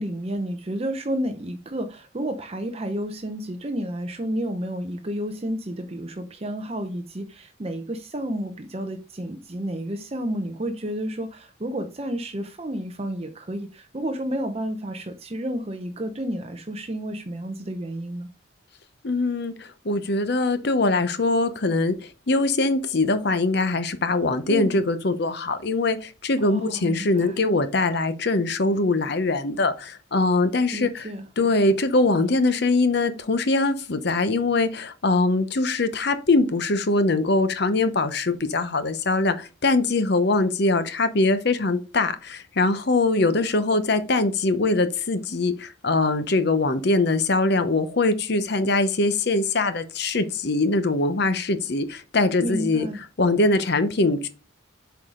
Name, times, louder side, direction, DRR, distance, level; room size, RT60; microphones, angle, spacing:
voice 1, 0.0-18.3 24.5-24.8 26.4-27.3 30.7-31.2 52.4-53.0, right 1 dB, 30° right, 0.6 m, -31 dB
voice 2, 19.0-31.1 31.4-52.9 53.2-54.3, left 2 dB, 55° left, 0.8 m, -22 dB
7.8 x 4.8 x 3.7 m
head